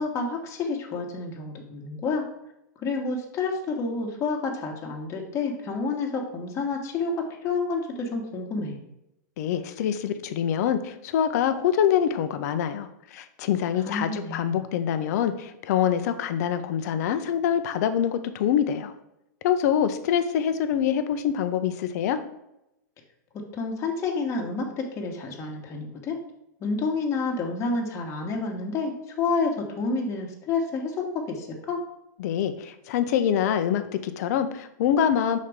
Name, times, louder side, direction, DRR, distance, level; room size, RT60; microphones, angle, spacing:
voice 1, 0.0-2.2 2.8-8.8 13.8-14.6 23.5-26.2 26.6-31.8, left 4 dB, 30° left, 0 dB, 1.4 m, -29 dB
voice 2, 9.4-18.9 19.4-22.2 32.2-35.4, left 9 dB, 60° left, 9 dB, 0.7 m, -25 dB
5.8 x 4.2 x 4.9 m, 0.85 s
hypercardioid pair, 120°, 10 cm